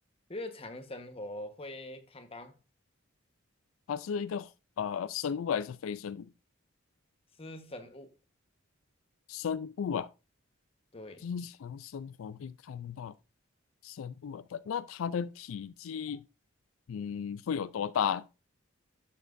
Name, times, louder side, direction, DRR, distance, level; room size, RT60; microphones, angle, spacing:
voice 1, 0.3-2.6 7.4-8.1 10.9-11.3, left 1 dB, 30° left, 1.1 m, -43 dB
voice 2, 3.9-4.5 4.8-6.3 9.3-10.1 11.2-13.1 13.8-16.2 16.9-18.3, left 7 dB, 85° left, 0.4 m, -34 dB
11.0 x 7.3 x 2.5 m
head